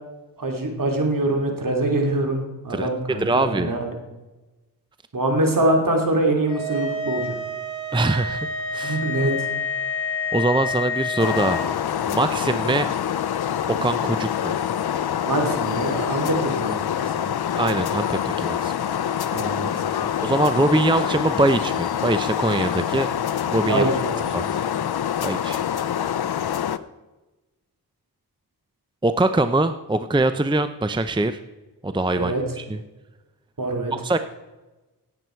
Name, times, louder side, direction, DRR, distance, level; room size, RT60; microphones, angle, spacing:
voice 1, 0.4-3.9 5.1-7.3 8.8-9.5 15.2-17.4 19.3-20.1 23.7-24.6 32.2-32.4 33.6-33.9, right 2 dB, 55° right, 2 dB, 3.0 m, -24 dB
voice 2, 3.2-3.7 7.9-8.5 8.7-9.0 10.3-11.6 12.0-12.9 13.7-14.6 17.6-18.7 20.2-23.1 23.5-23.9 24.3-24.4 25.2-25.6 29.0-31.4 31.8-32.8 33.9-34.2, right 2 dB, 10° right, 10 dB, 0.6 m, -23 dB
sound 1, 6.5-11.6, left 3 dB, 30° left, 4.2 m, -28 dB
sound 2, 11.2-26.8, left 9 dB, 70° left, 0.6 m, -25 dB
17.0 x 7.9 x 4.5 m, 1.1 s
cardioid pair, 55°, 39 cm